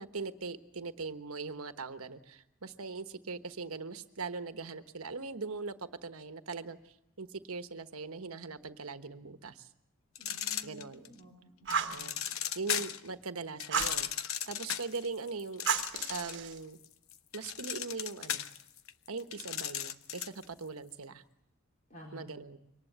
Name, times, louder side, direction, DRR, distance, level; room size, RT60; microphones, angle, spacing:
voice 1, 0.0-9.7 10.6-11.1 11.8-12.2 12.5-14.1 14.5-15.6 16.1-16.8 17.3-18.5 19.1-21.2 22.1-22.6, right 4 dB, 80° right, 9 dB, 1.2 m, -41 dB
sound 1, 10.2-11.2 11.7-13.1 13.6-16.5 16.8-20.4, left 10 dB, 75° left, 0.8 m, -36 dB
voice 2, 10.2-12.0 21.9-22.2, equal, 35° left, -1 dB, 4.1 m, -52 dB
Fire, 11.7-12.0 13.7-14.0 15.7-16.6, right 6 dB, 55° right, 1.4 m, -32 dB
24.0 x 19.0 x 8.0 m, 0.79 s
head